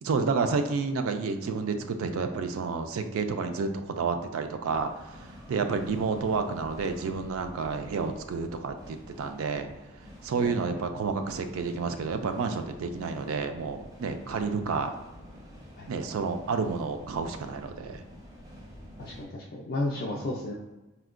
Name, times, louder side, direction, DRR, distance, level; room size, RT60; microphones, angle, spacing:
voice 1, 0.0-4.9 5.5-9.7 10.2-14.9 15.9-18.0, right 4 dB, 80° right, 7 dB, 0.3 m, -30 dB
sound 1, 4.3-19.2, equal, 15° right, 0.4 m, -48 dB
voice 2, 19.0-20.5, left 2 dB, 45° left, -4 dB, 0.3 m, -33 dB
4.3 x 2.1 x 2.4 m, 1.1 s
head